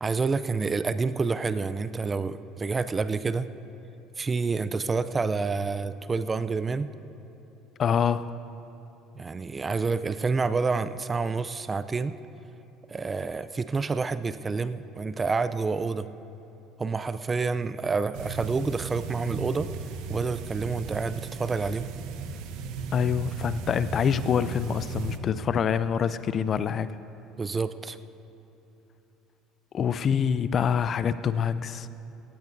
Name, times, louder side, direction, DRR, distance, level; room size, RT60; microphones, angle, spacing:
voice 1, 0.0-3.5 4.2-6.9 9.2-12.2 12.9-16.1 16.8-19.7 20.1-21.9 27.4-28.0, right 4 dB, 25° right, 13 dB, 0.5 m, -28 dB
voice 2, 7.8-8.3 22.9-26.9 29.7-31.9, left 7 dB, 45° left, 15 dB, 0.4 m, -26 dB
sound 1, 18.1-25.2, right 5 dB, 65° right, 0.8 m, -36 dB
17.0 x 16.5 x 2.7 m, 3.0 s
hypercardioid pair, 70°, 0 cm